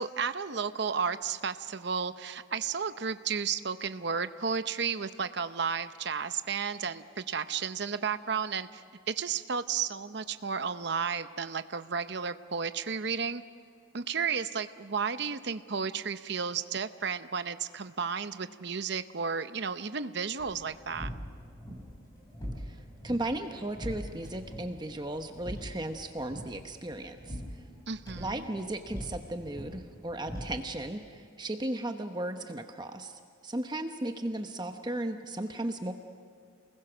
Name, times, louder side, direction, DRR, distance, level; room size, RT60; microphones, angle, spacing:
voice 1, 0.0-13.4 13.9-21.1 27.9-28.5, right 6 dB, 55° right, 11 dB, 0.8 m, -33 dB
sound 1, 20.4-31.0, equal, 20° left, 5.7 m, -43 dB
voice 2, 23.0-27.4 28.2-35.9, right 1 dB, 20° right, 6 dB, 0.9 m, -35 dB
28.5 x 20.5 x 6.3 m, 2.2 s
head